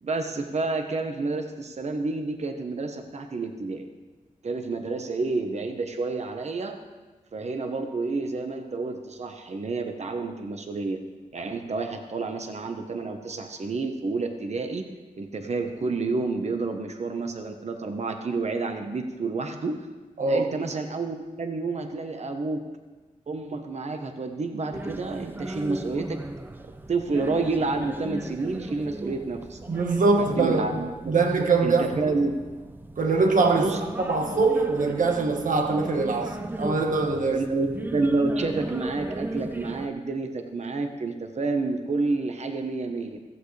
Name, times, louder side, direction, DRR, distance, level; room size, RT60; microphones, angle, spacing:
voice 1, 0.0-3.9 4.4-6.8 7.3-11.0 11.3-14.9 15.1-19.9 20.3-22.6 23.3-26.2 26.9-29.6 30.1-31.1 31.6-32.3 33.6-33.8 37.3-43.2, right 3 dB, 50° right, 1.0 m, -29 dB
voice 2, 20.2-20.5 29.7-32.2 33.0-37.4, right 3 dB, 70° right, 1.4 m, -23 dB
sound 1, 24.7-39.9, right 2 dB, 15° right, 0.5 m, -37 dB
15.0 x 15.0 x 3.3 m
wide cardioid pair, 110°, 14 cm